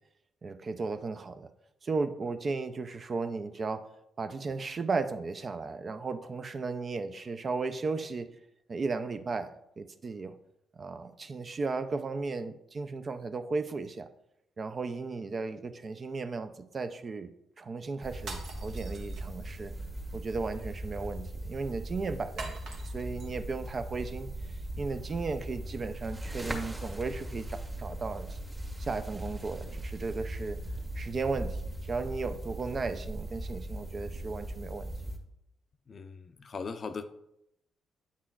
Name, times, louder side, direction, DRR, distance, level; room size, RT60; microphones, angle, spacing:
voice 1, 0.4-1.5 1.8-3.9 4.2-8.3 8.7-10.4 10.8-14.1 14.6-17.3 17.6-19.7 20.1-22.6 22.9-24.3 24.8-28.4 28.8-30.6 31.0-34.9, right 4 dB, 40° right, 9 dB, 0.5 m, -35 dB
sound 1, 18.0-35.2, right 1 dB, 20° right, 1.4 m, -39 dB
sound 2, 18.2-19.7 22.4-23.3, right 3 dB, 60° right, 0.9 m, -44 dB
voice 2, 35.9-37.0, left 5 dB, 45° left, 9 dB, 0.5 m, -39 dB
8.5 x 5.6 x 2.4 m, 0.81 s
figure-of-eight pair, 40°, 0 cm